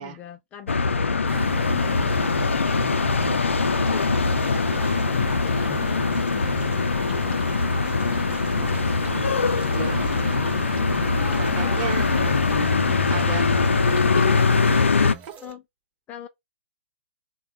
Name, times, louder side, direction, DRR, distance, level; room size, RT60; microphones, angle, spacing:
voice 1, 0.0-2.8 3.6-7.7 11.6-11.9 15.4-15.6 16.1-16.3, left 10 dB, 20° left, 0.4 m, -42 dB
sound 1, 0.7-15.1, left 4 dB, 90° left, 0.4 m, -22 dB
sound 2, 1.3-14.8, right 6 dB, 70° right, 0.7 m, -36 dB
sound 3, 1.8-15.5, right 7 dB, 20° right, 0.6 m, -42 dB
voice 2, 9.5-10.3 11.4-13.5 14.1-14.4 15.0-15.3, right 9 dB, 40° right, 0.9 m, -35 dB
3.7 x 2.2 x 3.4 m
hypercardioid pair, 130°, 7 cm